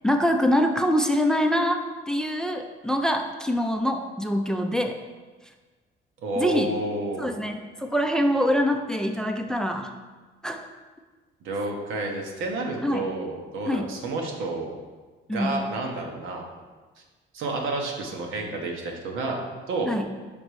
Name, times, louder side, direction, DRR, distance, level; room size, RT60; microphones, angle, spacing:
voice 1, 0.0-5.0 6.4-6.7 7.2-9.9 10.4-10.7 12.8-13.1 13.7-13.9 15.3-15.6 19.9-20.1, equal, 5° left, 5 dB, 0.4 m, -24 dB
voice 2, 6.2-7.4 11.4-14.8 15.3-16.5 17.3-19.4 19.7-19.9, right 2 dB, 90° right, 1 dB, 1.0 m, -30 dB
5.2 x 3.9 x 4.7 m, 1.3 s
cardioid pair, 90°, 20 cm